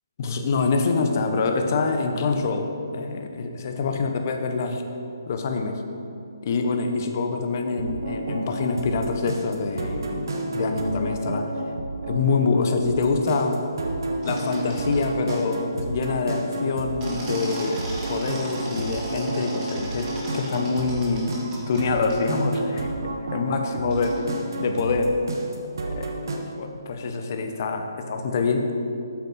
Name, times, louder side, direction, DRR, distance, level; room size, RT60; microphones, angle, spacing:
voice 1, 0.2-4.8 5.3-5.8 6.4-11.5 12.1-13.6 14.2-17.8 18.1-21.3 21.7-22.9 23.3-24.2 24.6-25.1 25.8-26.1 26.6-28.7, left 4 dB, 45° left, 5 dB, 0.9 m, -25 dB
sound 1, 7.6-26.4, right 2 dB, 65° right, 1.2 m, -31 dB
sound 2, 14.2-15.0 15.3-15.4 17.0-21.8 22.1-22.2 23.9-24.2, right 1 dB, 20° right, 2.0 m, -37 dB
8.5 x 8.1 x 4.2 m, 2.8 s
figure-of-eight pair, 145°, 2 cm